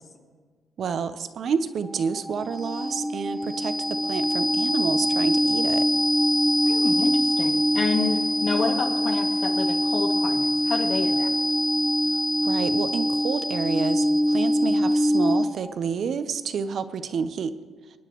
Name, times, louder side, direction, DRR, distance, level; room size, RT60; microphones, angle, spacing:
voice 1, 0.8-5.9 12.4-17.5, right 6 dB, 60° right, 11 dB, 0.8 m, -29 dB
sound 1, 1.8-15.7, equal, ahead, 0.4 m, -23 dB
voice 2, 6.6-11.3, left 4 dB, 55° left, 1 dB, 2.1 m, -29 dB
26.0 x 9.6 x 3.1 m, 1.5 s
cardioid pair, 90°, 0 cm